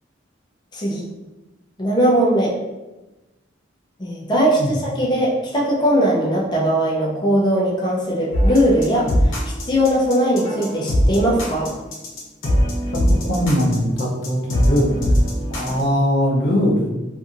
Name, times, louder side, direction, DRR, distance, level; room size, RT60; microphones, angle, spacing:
voice 1, 0.7-1.1 1.8-2.5 4.0-9.3 9.6-11.7, equal, 20° left, -5 dB, 0.5 m, -19 dB
sound 1, 8.3-15.8, equal, 90° left, 0.9 m, -21 dB
voice 2, 13.2-15.0 15.5-16.9, equal, 60° left, -3 dB, 0.7 m, -20 dB
2.7 x 2.6 x 2.5 m, 1.1 s
head